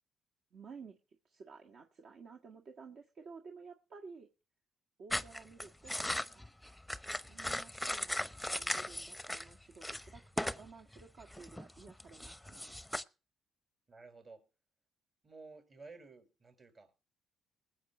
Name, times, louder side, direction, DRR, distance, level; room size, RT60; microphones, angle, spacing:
voice 1, 0.5-1.0 1.2-4.3 5.0-6.5 7.3-12.8, right 5 dB, 60° right, 3 dB, 1.6 m, -53 dB
sound 1, 5.1-9.5 9.8-10.7 10.9-13.0, left 1 dB, 5° left, 0.7 m, -38 dB
voice 2, 13.9-14.5 15.2-16.9, right 3 dB, 35° right, 6 dB, 5.2 m, -54 dB
20.5 x 7.6 x 4.3 m, 0.35 s
cardioid pair, 90°, 0 cm